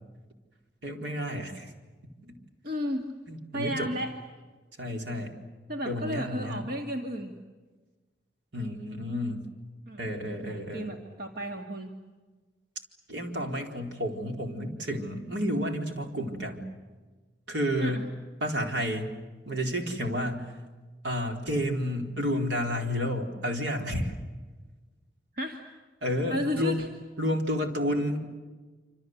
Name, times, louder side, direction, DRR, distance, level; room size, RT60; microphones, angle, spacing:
voice 1, 0.8-1.7 2.2-2.3 3.3-3.9 4.8-5.3 5.9-6.7 8.5-9.4 10.0-10.9 13.1-16.7 17.5-18.0 18.4-19.1 19.5-20.5 21.0-24.1 26.0-26.8 27.2-28.2, equal, 80° right, 3 dB, 4.2 m, -31 dB
voice 2, 2.6-3.1 3.5-4.1 5.7-7.3 9.9-10.0 10.4-11.9 17.8-18.1 25.3-25.7 26.3-26.9, left 1 dB, 55° right, 2 dB, 2.3 m, -33 dB
27.0 x 27.0 x 8.0 m, 1.3 s
head